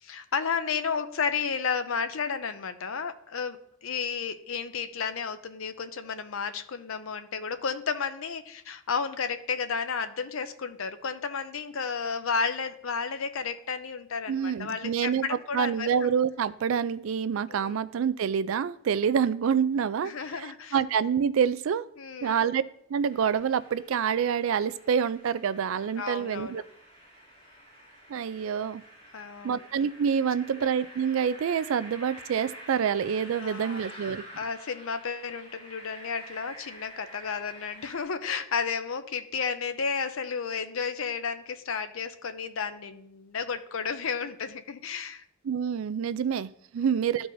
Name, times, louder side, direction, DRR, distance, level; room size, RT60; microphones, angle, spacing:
voice 1, 0.0-15.9 17.5-17.8 19.1-19.2 20.0-20.8 22.0-22.4 26.0-26.6 29.1-29.7 30.6-30.7 33.4-33.9 34.4-45.2 46.8-46.9, left 5 dB, 70° left, 10 dB, 0.6 m, -32 dB
voice 2, 14.3-20.1 20.7-21.8 22.2-22.6 22.9-26.6 28.1-28.8 29.4-34.2 45.5-47.3, right 7 dB, 70° right, 16 dB, 0.3 m, -27 dB
sound 1, 23.0-38.0, equal, 30° left, 2.9 m, -49 dB
13.5 x 4.6 x 2.6 m, 0.71 s
head